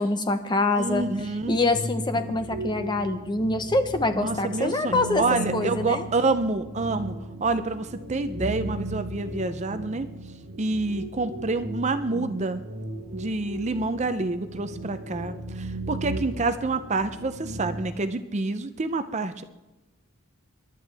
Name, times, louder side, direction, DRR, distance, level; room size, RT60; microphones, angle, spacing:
voice 1, 0.0-1.1 1.5-5.2 5.5-6.1, left 2 dB, 20° left, 8 dB, 0.9 m, -25 dB
voice 2, 0.8-1.6 4.1-7.1 7.4-10.1 10.6-12.6 13.1-19.4, right 3 dB, 30° right, 10 dB, 0.5 m, -28 dB
sound 1, 0.8-17.9, right 1 dB, 55° right, 1.7 m, -36 dB
27.5 x 11.5 x 3.4 m, 1.1 s
head